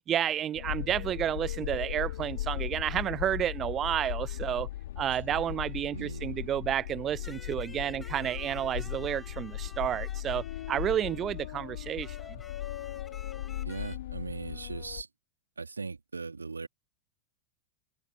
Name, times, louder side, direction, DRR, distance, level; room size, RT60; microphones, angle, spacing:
voice 1, 0.1-4.7 5.0-12.2, right 10 dB, 30° right, 0.5 m, -31 dB
sound 1, 0.5-15.0, left 14 dB, 55° left, 4.8 m, -38 dB
voice 2, 5.9-6.3 13.6-15.1 15.6-16.7, right 4 dB, 75° right, 2.5 m, -39 dB
sound 2, 7.2-11.5 12.0-14.0, left 3 dB, 10° left, 6.9 m, -52 dB
figure-of-eight pair, 90°, 0 cm